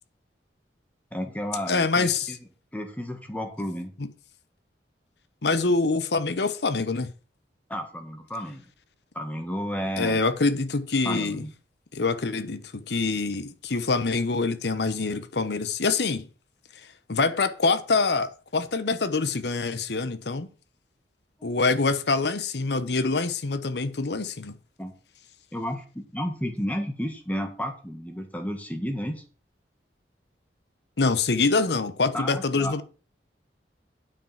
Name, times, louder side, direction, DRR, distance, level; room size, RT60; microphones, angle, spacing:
voice 1, 1.1-2.4 2.7-3.9 7.7-8.6 9.1-10.2 11.0-11.5 21.4-21.6 24.8-24.9 25.5-29.2 32.1-32.8, equal, 10° left, 1.6 m, -32 dB
voice 2, 1.7-2.3 4.0-4.1 5.4-7.1 10.0-11.4 11.9-16.3 17.1-20.5 21.4-24.5 31.0-32.8, left 3 dB, 70° left, 0.9 m, -25 dB
8.9 x 5.1 x 7.2 m
head